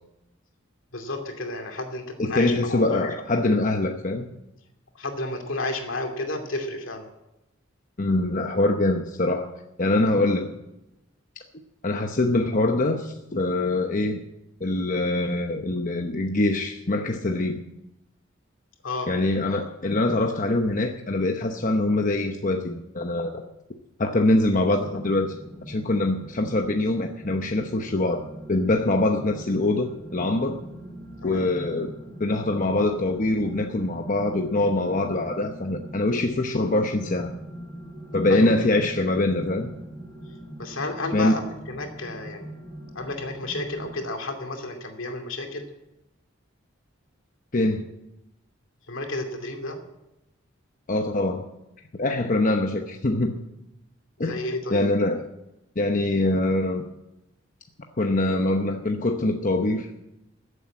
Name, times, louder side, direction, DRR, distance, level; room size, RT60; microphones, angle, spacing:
voice 1, 0.9-3.1 4.9-7.1 18.8-19.1 31.2-31.5 38.3-38.6 40.6-42.5 42.9-45.7 48.9-49.8 54.2-54.9, left 2 dB, 75° left, 4 dB, 2.6 m, -32 dB
voice 2, 2.2-4.3 8.0-9.5 9.8-10.6 11.8-14.2 14.6-17.6 19.1-23.4 24.0-25.3 25.7-28.2 28.5-30.6 31.2-31.9 32.2-37.3 38.1-39.7 41.1-41.4 47.5-47.8 50.9-51.4 51.9-53.3 54.2-54.4 54.7-55.2 55.8-56.9 58.0-59.9, left 2 dB, 40° left, 4 dB, 0.9 m, -24 dB
sound 1, 24.7-44.1, right 1 dB, 15° left, 4.7 m, -41 dB
14.5 x 8.1 x 8.7 m, 0.92 s
head